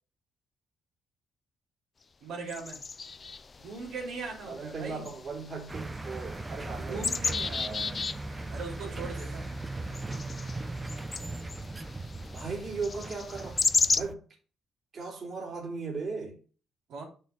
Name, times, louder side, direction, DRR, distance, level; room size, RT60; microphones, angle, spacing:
voice 1, 2.2-2.8 3.6-5.1 6.8-8.0 8.5-9.5 16.9-17.0, right 4 dB, 75° right, 3.3 m, -40 dB
sound 1, 2.5-14.0, left 4 dB, 35° left, 0.4 m, -35 dB
voice 2, 4.4-7.1 7.4-7.9 8.8-9.1 12.3-13.6 13.9-14.2 14.9-16.4, right 4 dB, 45° right, 3.2 m, -37 dB
sound 2, 5.7-14.1, right 2 dB, 20° right, 0.7 m, -39 dB
6.6 x 6.2 x 3.9 m
cardioid pair, 85°, 0 cm